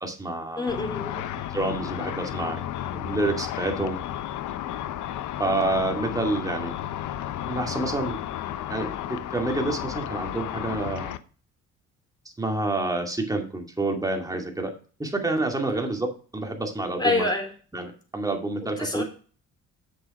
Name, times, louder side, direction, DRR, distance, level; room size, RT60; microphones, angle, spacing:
voice 1, 0.0-0.7 1.5-2.6 2.9-4.0 5.4-6.7 7.5-8.2 8.7-11.1 12.4-14.7 15.0-16.1 16.3-17.3 17.7-19.0, right 2 dB, 10° right, 2 dB, 2.4 m, -28 dB
voice 2, 0.6-1.3 15.8-15.9 17.0-17.5 18.8-19.0, left 2 dB, 15° left, 2 dB, 3.6 m, -26 dB
Car / Traffic noise roadway noise / Engine, 0.7-11.2, left 11 dB, 80° left, 0.8 m, -33 dB
7.7 x 6.8 x 4.9 m, 0.40 s
cardioid pair, 90°, 30 cm